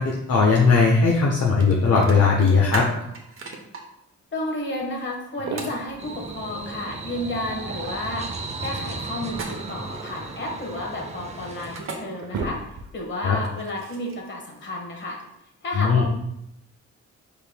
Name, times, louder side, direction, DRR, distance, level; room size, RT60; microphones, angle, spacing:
voice 1, 0.0-2.9 13.2-13.4 15.8-16.1, left 4 dB, 55° left, -1 dB, 0.8 m, -18 dB
sound 1, 1.6-1.7 2.0-3.8 5.6-5.8 9.3-9.9 11.6-12.0 13.4-14.3, right 4 dB, 45° right, 0.9 m, -35 dB
voice 2, 4.3-12.6 12.9-15.2 15.6-16.1, left 1 dB, 40° left, 0 dB, 1.3 m, -32 dB
sound 2, 4.8-4.9 5.3-6.0 7.5-8.3 9.6-11.0 11.5-11.6 12.0-13.1, right 4 dB, 80° right, 0.7 m, -36 dB
sound 3, 6.0-11.8, right 3 dB, 25° right, 0.6 m, -35 dB
5.2 x 4.5 x 2.2 m, 0.81 s
cardioid pair, 90°, 29 cm